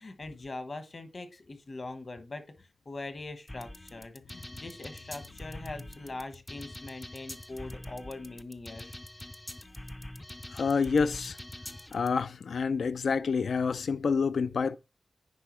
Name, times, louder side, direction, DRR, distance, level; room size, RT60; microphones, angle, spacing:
voice 1, 0.0-9.0, left 2 dB, 40° left, 1.1 m, -42 dB
sound 1, 3.5-12.1, left 1 dB, 15° left, 0.4 m, -44 dB
voice 2, 10.5-11.4 11.9-14.8, left 5 dB, 75° left, 0.4 m, -28 dB
9.9 x 4.7 x 3.1 m
wide cardioid pair, 120°, 0 cm